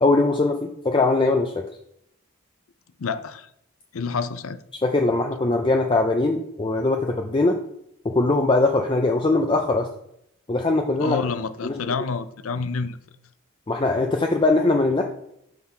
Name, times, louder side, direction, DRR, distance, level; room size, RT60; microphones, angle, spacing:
voice 1, 0.0-1.5 4.8-7.6 8.0-9.9 10.5-11.3 11.6-11.8 13.7-15.0, left 2 dB, 25° left, 3 dB, 0.4 m, -21 dB
voice 2, 3.0-3.5 3.9-4.6 11.0-13.0, left 5 dB, 80° left, 12 dB, 0.5 m, -28 dB
5.8 x 5.7 x 4.3 m, 0.76 s
head